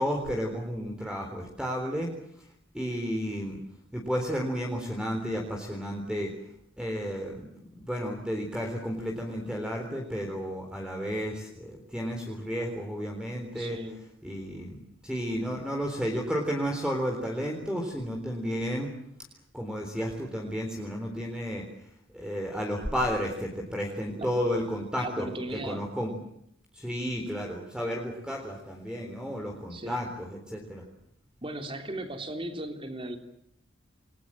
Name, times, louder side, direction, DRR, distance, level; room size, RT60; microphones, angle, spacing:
voice 1, 0.0-2.1 2.4-2.5 2.7-3.6 3.9-6.3 6.8-13.8 14.2-18.9 19.5-21.6 22.1-26.1 26.7-30.8, equal, 5° right, 1 dB, 3.9 m, -32 dB
voice 2, 13.6-14.0 24.1-24.3 25.0-25.9 29.7-30.0 31.4-33.2, right 1 dB, 25° right, 6 dB, 3.5 m, -37 dB
29.0 x 22.0 x 7.6 m, 0.73 s
head